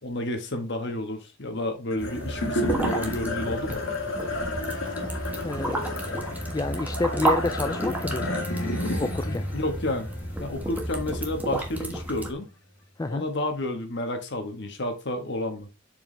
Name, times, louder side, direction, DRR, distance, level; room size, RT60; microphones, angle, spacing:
voice 1, 0.0-3.8 9.2-10.1 10.4-12.5 13.1-15.7, left 1 dB, 60° left, 1.5 m, -31 dB
sound 1, 1.9-12.4, left 1 dB, 75° left, 1.9 m, -32 dB
sound 2, 2.0-12.3, right 1 dB, 10° right, 1.4 m, -32 dB
voice 2, 5.4-5.9 6.5-9.5 13.0-13.2, left 2 dB, 20° left, 0.3 m, -30 dB
7.4 x 4.8 x 3.3 m
head